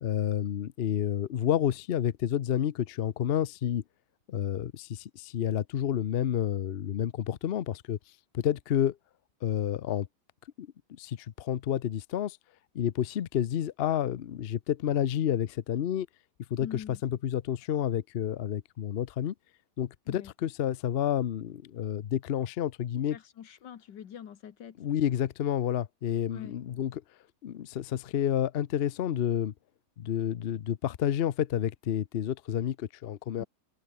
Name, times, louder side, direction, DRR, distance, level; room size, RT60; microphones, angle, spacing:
voice 1, 0.0-3.8 4.3-8.0 8.3-9.0 9.4-10.1 10.6-12.4 12.7-16.1 16.5-19.3 19.8-23.2 24.8-27.0 27.4-29.5 30.0-33.4, left 10 dB, 60° left, 0.6 m, -30 dB
voice 2, 16.6-17.0 20.1-20.3 23.1-24.8 26.3-26.6 33.4-33.5, left 9 dB, 85° left, 2.0 m, -44 dB
omnidirectional pair, 1.9 m